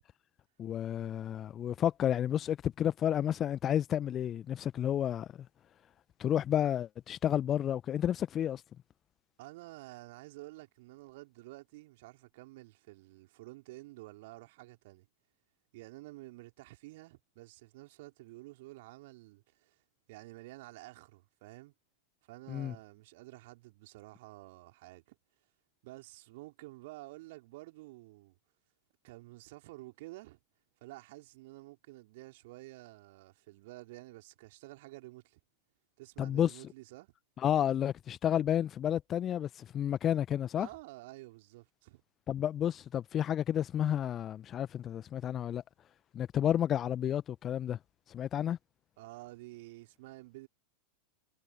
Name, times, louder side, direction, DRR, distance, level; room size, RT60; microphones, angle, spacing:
voice 1, 0.6-5.3 6.2-8.6 22.5-22.7 36.2-36.5 37.4-40.7 42.3-45.6 46.1-47.8 48.1-48.6, left 10 dB, 25° left, 1.2 m, -31 dB
voice 2, 9.4-15.1 15.7-19.8 20.1-21.7 22.3-25.2 25.8-28.4 29.0-30.4 30.8-35.4 36.0-37.1 40.6-42.0 49.0-50.5, right 20 dB, 50° right, 4.3 m, -50 dB
figure-of-eight pair, 90°, 0 cm